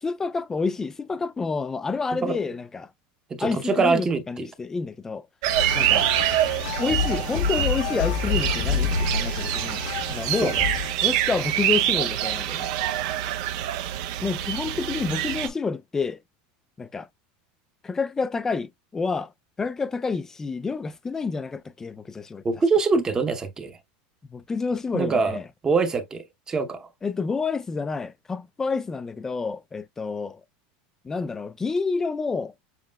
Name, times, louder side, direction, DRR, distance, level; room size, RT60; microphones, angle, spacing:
voice 1, 0.0-2.9 3.4-5.2 5.7-6.1 6.8-9.8 10.1-10.5 11.0-12.7 14.2-16.2 16.8-17.1 17.8-19.3 19.6-22.4 24.3-25.4 27.0-30.4 31.0-32.5, left 4 dB, 10° left, 0.4 m, -29 dB
voice 2, 3.3-4.5 10.4-10.6 22.4-23.8 24.9-25.4 25.6-26.9, right 4 dB, 15° right, 0.8 m, -24 dB
sound 1, 5.4-15.5, right 12 dB, 60° right, 0.6 m, -26 dB
sound 2, 5.5-10.9, left 5 dB, 70° left, 1.0 m, -28 dB
7.3 x 3.0 x 2.2 m
supercardioid pair, 165°, 4 cm